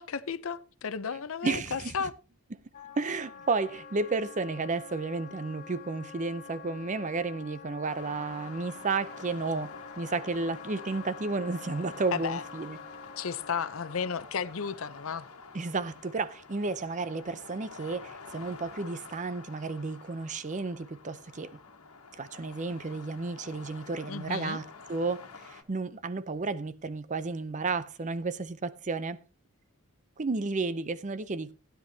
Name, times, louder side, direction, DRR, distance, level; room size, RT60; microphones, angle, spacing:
voice 1, 0.0-2.1 12.1-12.4 13.2-15.3 24.1-24.6, left 6 dB, 65° left, 0.6 m, -33 dB
voice 2, 1.4-2.1 3.0-12.8 15.5-21.5 22.2-29.2 30.2-31.5, right 3 dB, 35° right, 0.5 m, -32 dB
Wind instrument woodwind instrument, 2.7-14.0, left 5 dB, 35° left, 2.0 m, -47 dB
sound 1, 7.8-25.6, left 4 dB, 85° left, 1.4 m, -48 dB
15.5 x 10.0 x 2.7 m
head